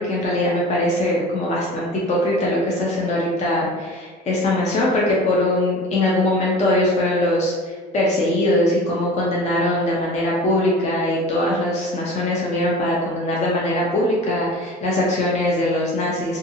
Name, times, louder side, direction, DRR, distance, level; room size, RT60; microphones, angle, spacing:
voice 1, 0.0-16.4, left 1 dB, 40° left, -4 dB, 0.6 m, -21 dB
2.6 x 2.4 x 2.7 m, 1.5 s
cardioid pair, 110°, 17 cm